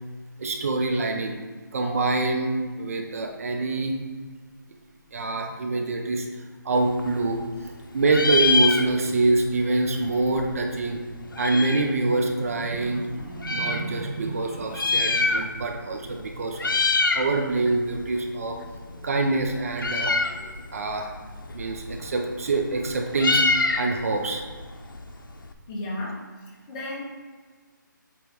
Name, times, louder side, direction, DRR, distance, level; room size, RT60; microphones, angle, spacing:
voice 1, 0.4-1.3 1.7-4.0 5.1-7.4 7.9-11.0 11.4-18.6 19.0-20.3 20.7-21.1 21.5-24.4, right 3 dB, 45° right, 2 dB, 0.9 m, -25 dB
Meow, 6.8-7.8 8.0-9.3 9.6-9.7 9.9-12.0 12.6-13.8 14.6-15.8 16.1-16.3 16.5-17.3 17.7-25.5, left 3 dB, 80° left, 0.8 m, -26 dB
voice 2, 25.7-27.0, left 1 dB, 20° left, -4 dB, 1.3 m, -34 dB
8.5 x 3.5 x 4.7 m, 1.5 s
figure-of-eight pair, 160°, 11 cm